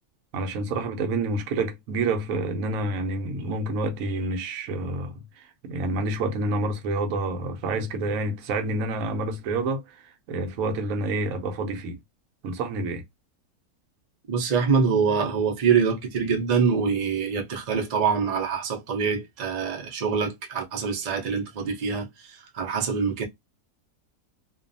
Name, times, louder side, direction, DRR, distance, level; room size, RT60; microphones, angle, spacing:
voice 1, 0.3-12.0 12.4-13.0, right 2 dB, 70° right, 1.0 m, -28 dB
voice 2, 14.3-23.2, right 6 dB, 55° right, 0.4 m, -25 dB
2.5 x 2.3 x 2.5 m
omnidirectional pair, 1.6 m